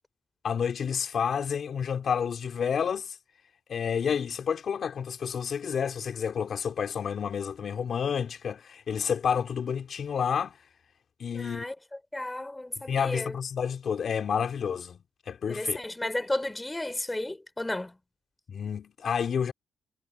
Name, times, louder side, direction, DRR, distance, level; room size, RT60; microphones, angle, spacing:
voice 1, 0.4-3.2 3.7-10.5 11.2-11.6 12.9-15.0 15.3-15.8 18.5-19.5, left 7 dB, 55° left, 4.5 m, -29 dB
voice 2, 11.3-11.7 12.1-13.4 15.5-17.9, left 1 dB, 10° left, 4.8 m, -33 dB
cardioid pair, 80°, 0 cm